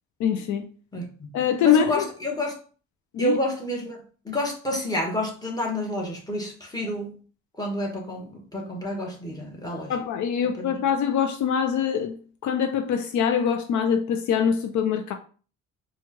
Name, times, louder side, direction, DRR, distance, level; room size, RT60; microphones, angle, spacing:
voice 1, 0.2-0.7 1.3-2.0 3.1-3.4 9.9-12.2 12.4-15.1, left 8 dB, 75° left, 0.5 m, -23 dB
voice 2, 0.9-1.3 1.6-2.5 3.2-7.1 7.6-10.0 10.6-10.7, left 1 dB, 10° left, 1.2 m, -29 dB
4.3 x 2.3 x 2.9 m
cardioid pair, 90°, 30 cm